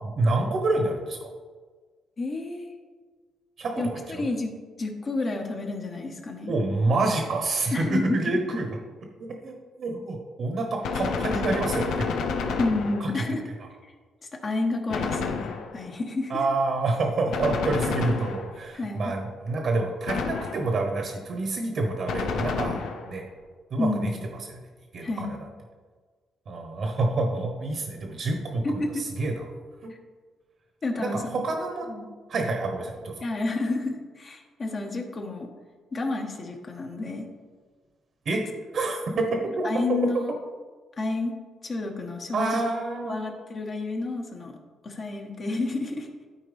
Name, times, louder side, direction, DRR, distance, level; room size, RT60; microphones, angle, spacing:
voice 1, 0.0-1.3 3.6-4.3 6.5-8.7 9.4-12.3 13.0-13.2 16.3-23.2 23.7-24.1 24.5-24.6 24.9-25.4 26.5-29.4 29.8-29.9 31.0-31.9 32.3-33.2 38.2-38.5 38.7-39.2 39.6-39.7 42.3-43.1, right 2 dB, 60° right, 2 dB, 1.2 m, -28 dB
voice 2, 2.2-2.7 3.8-3.9 4.2-6.5 7.7-8.2 12.6-13.4 13.8-13.9 14.3-16.3 18.7-19.1 23.8-24.2 25.0-25.4 28.6-29.1 30.8-31.4 31.9-32.1 33.2-35.5 35.9-37.3 39.1-39.2 39.6-40.3 41.0-41.3 41.6-42.6 43.1-44.5 44.8-46.1, left 2 dB, 40° left, 2 dB, 1.4 m, -30 dB
Gunshot gunfire, 10.8-13.3 14.9-15.9 17.3-18.7 20.1-20.9 22.1-23.2, left 5 dB, 80° left, 0.7 m, -30 dB
12.5 x 4.5 x 3.5 m, 1.5 s
cardioid pair, 90°, 0 cm